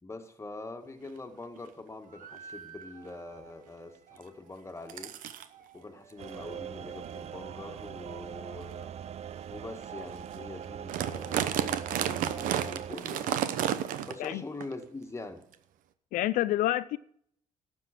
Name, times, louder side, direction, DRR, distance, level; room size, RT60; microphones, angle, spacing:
voice 1, 0.0-5.1 5.7-8.9 9.5-13.3 14.0-15.5, left 3 dB, 20° left, 1.8 m, -44 dB
sound 1, 1.0-1.1 1.6-1.8 2.4-2.5 2.8-3.1 4.2-4.3 4.9-5.5 6.2-6.4 7.0-7.2 7.8-7.9 8.6-8.7 9.3-9.4 9.8-9.9 10.1-10.4 10.6-14.3 14.6-14.7 15.5-15.6, right 10 dB, 85° right, 0.8 m, -32 dB
sound 2, 2.0-9.1, right 6 dB, 70° right, 1.9 m, -53 dB
sound 3, 6.2-12.9, right 9 dB, 50° right, 0.4 m, -41 dB
voice 2, 16.1-17.0, left 15 dB, 85° left, 0.4 m, -28 dB
12.0 x 7.7 x 6.0 m
cardioid pair, 85°, 14 cm